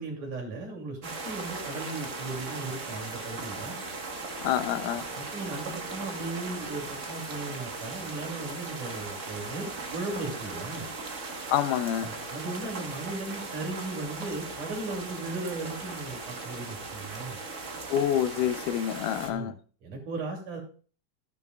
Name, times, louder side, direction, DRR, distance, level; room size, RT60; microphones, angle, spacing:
voice 1, 0.0-3.8 4.9-10.9 12.0-17.4 19.3-19.5 19.8-20.6, right 3 dB, 75° right, 4.3 m, -37 dB
sound 1, 1.0-19.3, right 3 dB, 55° right, 0.8 m, -38 dB
voice 2, 4.4-5.1 11.5-12.1 17.9-19.5, left 10 dB, 85° left, 2.3 m, -27 dB
13.5 x 10.5 x 2.4 m
omnidirectional pair, 3.6 m